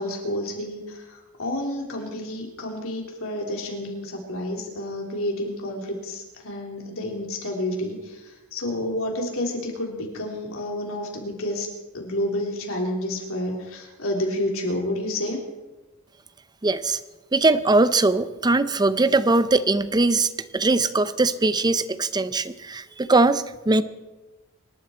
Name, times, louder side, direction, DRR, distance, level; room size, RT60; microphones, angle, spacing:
voice 1, 0.0-11.7 11.9-15.4, left 1 dB, 65° left, 0 dB, 3.6 m, -30 dB
voice 2, 16.6-17.0 17.3-23.8, right 2 dB, 20° right, 13 dB, 0.6 m, -21 dB
25.0 x 12.0 x 4.4 m, 1.1 s
head